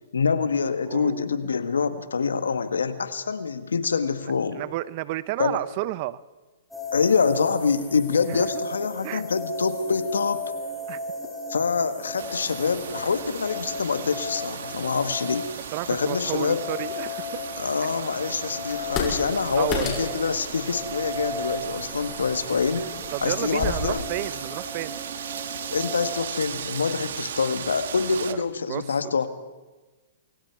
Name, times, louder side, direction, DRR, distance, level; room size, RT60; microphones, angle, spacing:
voice 1, 0.1-4.6 5.4-5.6 6.9-10.4 11.5-15.5 15.9-16.6 17.6-22.9 23.2-24.0 25.7-29.3, left 5 dB, 90° left, 10 dB, 1.8 m, -25 dB
voice 2, 0.9-1.3 4.2-6.2 8.3-8.5 9.0-9.2 10.9-11.0 15.7-17.3 19.5-19.9 23.1-24.9 28.3-28.4 28.7-29.3, right 17 dB, 45° right, 18 dB, 0.8 m, -31 dB
sound 1, 6.7-26.2, left 2 dB, 5° left, 6.9 m, -36 dB
Wind, 12.2-28.3, right 8 dB, 70° right, 1.6 m, -37 dB
sound 2, 18.7-23.8, left 5 dB, 35° left, 6.4 m, -34 dB
28.0 x 22.5 x 4.8 m, 1.2 s
hypercardioid pair, 130°, 0 cm